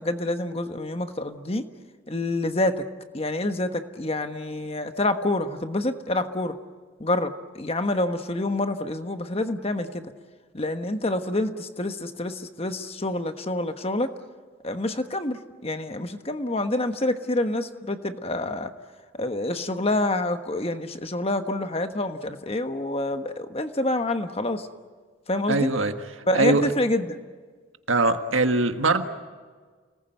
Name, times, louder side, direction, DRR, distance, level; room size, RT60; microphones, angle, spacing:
voice 1, 0.0-1.6 2.1-2.8 3.1-6.5 7.0-10.1 10.5-14.1 14.6-18.7 19.1-24.7 25.3-25.7 26.3-27.2, left 1 dB, 30° left, 8 dB, 1.2 m, -27 dB
voice 2, 25.5-25.9 26.3-26.6 27.9-29.0, right 3 dB, 75° right, 7 dB, 1.7 m, -21 dB
29.5 x 20.0 x 9.2 m, 1.5 s
head